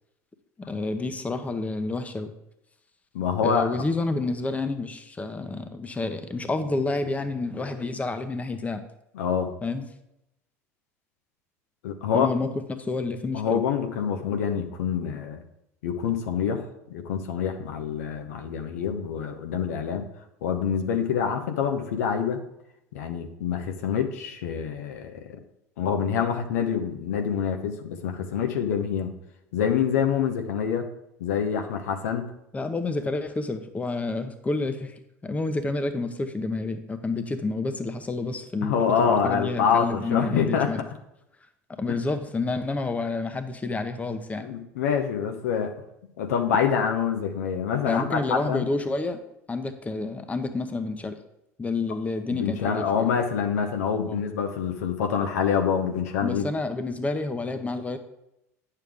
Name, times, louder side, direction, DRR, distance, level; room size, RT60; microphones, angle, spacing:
voice 1, 0.6-2.3 3.4-8.8 9.6-9.8 12.1-13.6 32.5-40.8 41.7-44.5 47.9-49.2 49.5-51.2 51.6-53.1 54.1-54.2 56.2-58.0, left 3 dB, 15° left, 8 dB, 0.9 m, -29 dB
voice 2, 3.1-3.8 9.1-9.5 11.8-12.3 13.3-15.4 15.8-20.1 20.4-22.4 22.9-25.4 25.8-29.1 29.5-30.9 31.2-32.3 38.6-40.7 41.9-42.0 44.4-45.7 46.2-48.7 52.3-56.4, left 7 dB, 80° left, 5 dB, 0.9 m, -26 dB
9.0 x 6.9 x 3.6 m, 0.85 s
hypercardioid pair, 85°, 8 cm